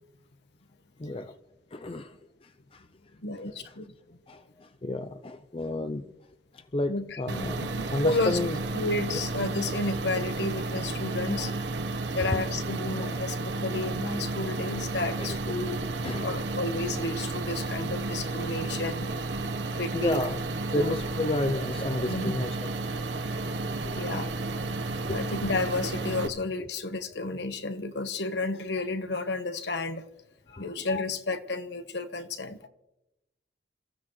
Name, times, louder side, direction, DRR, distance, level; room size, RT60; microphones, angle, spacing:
voice 1, 1.0-1.3 1.7-2.1 2.7-2.8 3.7-3.8 4.3-4.4 4.8-6.1 6.5-8.6 11.4-11.5 12.2-12.4 13.0-13.2 15.2-15.3 16.0-16.3 19.9-20.4 20.7-22.7 23.9-24.3 25.0-25.2 30.5-30.7 32.0-32.2, left 2 dB, 30° left, 0.5 m, -31 dB
voice 2, 3.2-3.9 6.9-7.2 7.6-8.4 8.7-11.5 12.1-15.9 16.2-19.1 19.7-20.3 20.8-20.9 22.1-22.3 23.9-24.3 25.1-30.0 30.5-32.7, left 2 dB, 65° left, 1.1 m, -32 dB
sound 1, 7.3-26.3, right 3 dB, 70° right, 1.0 m, -32 dB
28.5 x 15.0 x 3.1 m
head